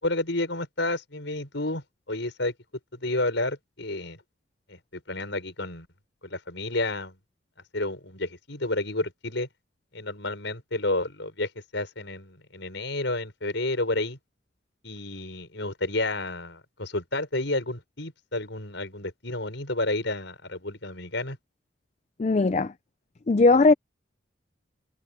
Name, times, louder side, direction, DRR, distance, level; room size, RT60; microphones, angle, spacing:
voice 1, 0.0-2.5 2.9-4.2 4.7-5.9 6.2-7.2 7.7-9.5 9.9-14.2 14.8-21.4, left 2 dB, 70° left, 5.5 m, -30 dB
voice 2, 22.2-22.7 23.3-23.7, left 3 dB, 35° left, 0.4 m, -19 dB
head